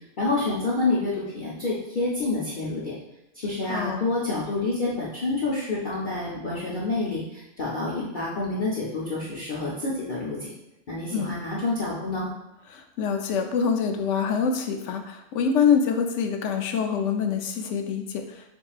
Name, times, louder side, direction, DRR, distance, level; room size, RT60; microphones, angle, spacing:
voice 1, 0.2-2.9 3.3-10.5 10.9-12.3, left 2 dB, 45° left, -7 dB, 0.9 m, -28 dB
voice 2, 3.7-4.1 11.1-11.3 12.7-18.5, left 6 dB, 80° left, 5 dB, 0.9 m, -25 dB
7.4 x 2.7 x 2.4 m, 0.92 s
omnidirectional pair, 1.2 m